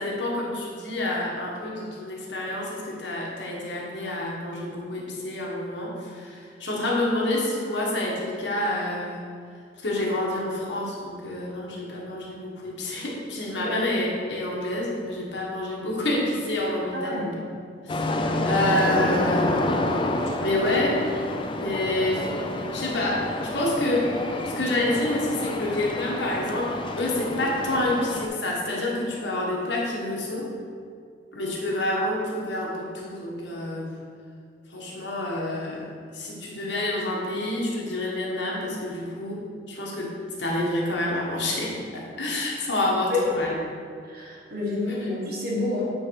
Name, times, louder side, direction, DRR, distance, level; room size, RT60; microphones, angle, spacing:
voice 1, 0.0-9.2 9.8-17.3 17.8-19.7 20.4-21.0 21.5-22.3 22.7-24.1 24.5-30.5 31.3-33.9 34.7-35.9 36.1-39.4 39.7-40.1 40.4-43.5 45.0-45.1, left 1 dB, 75° left, -3 dB, 1.4 m, -28 dB
voice 2, 16.9-17.2 43.1-43.2 44.1-45.8, left 2 dB, 60° right, -4 dB, 1.6 m, -28 dB
sound 1, 17.9-28.3, left 1 dB, 30° left, 0.4 m, -28 dB
8.8 x 3.3 x 4.7 m, 2.2 s
head